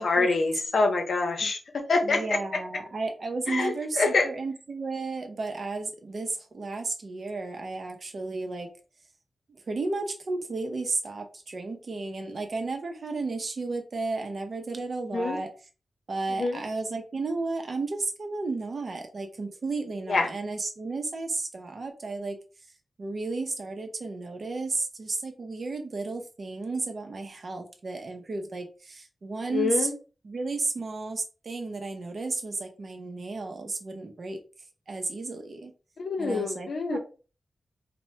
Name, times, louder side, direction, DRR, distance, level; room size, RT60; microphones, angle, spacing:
voice 1, 0.0-1.6 1.9-2.4 3.5-4.3 15.1-15.4 16.4-16.6 20.1-20.3 29.5-29.9 36.0-37.0, left 3 dB, 70° left, 3 dB, 0.7 m, -25 dB
voice 2, 2.0-8.7 9.7-15.5 16.1-22.4 23.0-29.9 30.2-34.4 34.9-35.7 36.2-37.0, right 3 dB, 55° right, 5 dB, 0.5 m, -33 dB
2.7 x 2.1 x 3.2 m, 0.35 s
wide cardioid pair, 125°, 0 cm